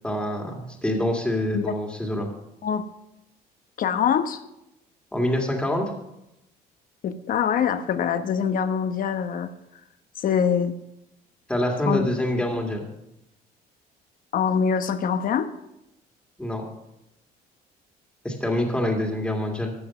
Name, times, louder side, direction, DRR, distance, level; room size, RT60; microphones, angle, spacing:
voice 1, 0.0-2.3 5.1-5.9 11.5-12.9 16.4-16.6 18.2-19.7, left 1 dB, 5° left, 1 dB, 2.1 m, -26 dB
voice 2, 3.8-4.4 7.0-9.5 10.2-10.7 11.9-12.1 14.3-15.5, left 7 dB, 55° left, 10 dB, 1.0 m, -24 dB
13.0 x 7.0 x 6.0 m, 0.86 s
cardioid pair, 110°, 17 cm